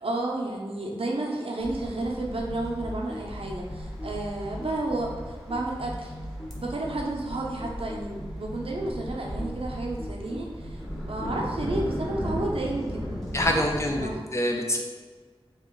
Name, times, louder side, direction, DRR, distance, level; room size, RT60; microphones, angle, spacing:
voice 1, 0.0-6.1 6.6-14.2, right 2 dB, 65° right, -1 dB, 0.6 m, -32 dB
sound 1, 1.6-14.1, equal, ahead, 0.8 m, -37 dB
sound 2, 2.5-11.9, equal, 65° left, 1.3 m, -39 dB
voice 2, 13.3-14.8, left 1 dB, 30° left, 1 dB, 0.5 m, -26 dB
2.9 x 2.4 x 3.6 m, 1.4 s
wide cardioid pair, 55°, 10 cm